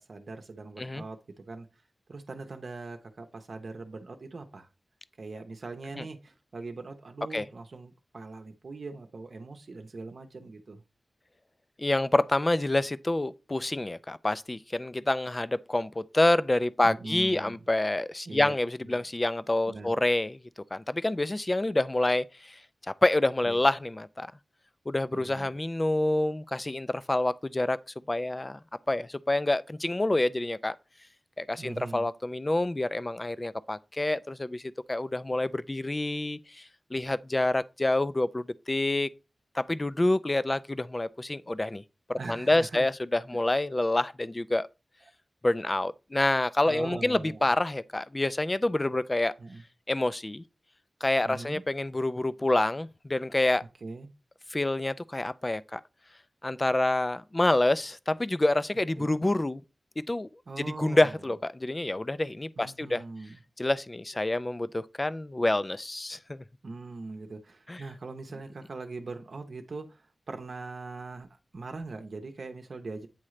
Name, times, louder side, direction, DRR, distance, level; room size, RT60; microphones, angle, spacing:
voice 1, 0.0-1.7 2.1-4.7 5.2-10.8 16.8-17.7 18.3-18.5 18.8-19.0 19.7-19.9 23.4-23.7 25.1-25.5 31.6-32.1 42.2-42.9 46.6-47.6 49.4-49.6 51.2-51.6 53.8-54.1 59.0-59.2 60.5-61.2 62.6-63.4 66.6-71.3 71.5-73.1, right 3 dB, 75° right, 0.7 m, -41 dB
voice 2, 11.8-20.4 20.7-22.6 23.0-24.3 24.9-27.8 28.1-28.6 28.9-30.8 31.4-34.6 34.9-36.6 36.9-39.1 39.5-41.8 42.1-44.7 45.4-49.3 49.9-50.4 51.0-53.6 54.5-55.8 56.4-59.6 60.0-60.3 60.6-63.0 63.6-66.4 67.7-67.8, left 2 dB, 25° left, 0.3 m, -27 dB
8.6 x 3.7 x 3.2 m
wide cardioid pair, 85°, 0 cm